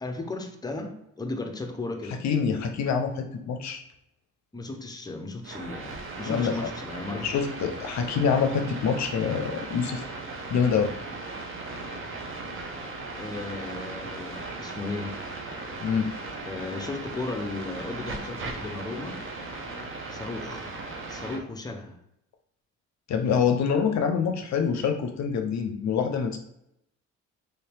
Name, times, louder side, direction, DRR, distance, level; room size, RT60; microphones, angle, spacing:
voice 1, 0.0-2.2 4.5-7.3 13.1-15.2 16.5-19.2 20.1-20.8 21.1-22.0, left 2 dB, 15° left, 5 dB, 0.7 m, -35 dB
voice 2, 2.2-3.8 6.2-6.5 7.1-10.0 10.5-10.9 15.8-16.1 23.1-26.4, left 6 dB, 65° left, 6 dB, 0.5 m, -26 dB
sound 1, 5.4-21.4, right 3 dB, 45° right, 0.8 m, -37 dB
3.3 x 2.8 x 3.3 m, 0.81 s
cardioid pair, 90°, 30 cm